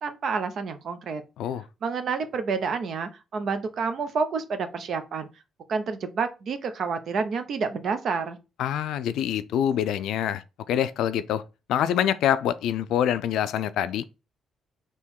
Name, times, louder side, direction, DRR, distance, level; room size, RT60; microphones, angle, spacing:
voice 1, 0.0-1.2 1.8-5.3 5.7-8.4, right 5 dB, 60° right, 0.7 m, -29 dB
voice 2, 8.6-11.4 11.7-14.0, left 10 dB, 80° left, 0.3 m, -25 dB
3.7 x 3.0 x 4.4 m
cardioid pair, 90°, 0 cm